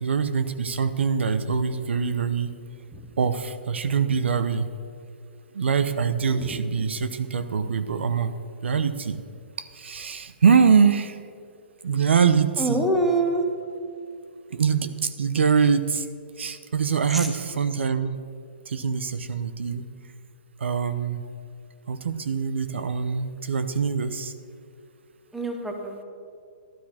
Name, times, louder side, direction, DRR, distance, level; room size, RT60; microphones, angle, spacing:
voice 1, 0.0-2.5 3.2-4.7 5.5-9.2 9.6-11.2 11.8-12.9 14.5-16.1 16.4-18.2 18.7-19.9 20.6-21.2 21.9-24.3, right 6 dB, 85° right, 12 dB, 0.8 m, -24 dB
voice 2, 6.3-6.6 12.6-13.4 17.1-17.3 25.3-26.0, right 1 dB, ahead, 2 dB, 0.6 m, -26 dB
12.5 x 12.0 x 4.3 m, 2.3 s
hypercardioid pair, 175°, 6 cm